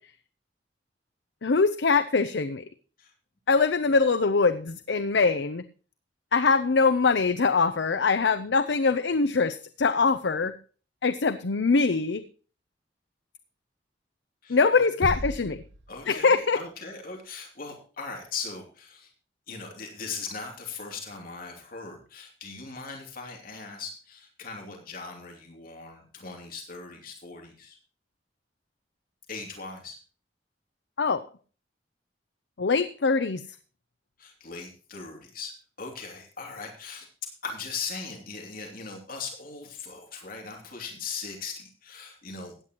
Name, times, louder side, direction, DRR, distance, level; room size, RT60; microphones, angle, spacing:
voice 1, 1.4-2.6 3.5-5.6 6.3-10.5 11.0-12.2 14.5-15.6 16.1-16.6 31.0-31.2 32.6-33.4, left 4 dB, 75° left, 11 dB, 0.6 m, -23 dB
voice 2, 14.4-15.2 15.9-19.1 19.5-27.8 29.3-30.0 34.2-35.5 35.8-37.1 37.4-42.6, left 4 dB, 55° left, 1 dB, 2.8 m, -39 dB
sound 1, 15.0-16.6, right 1 dB, 85° right, 1.0 m, -35 dB
16.0 x 9.9 x 3.0 m, 0.38 s
head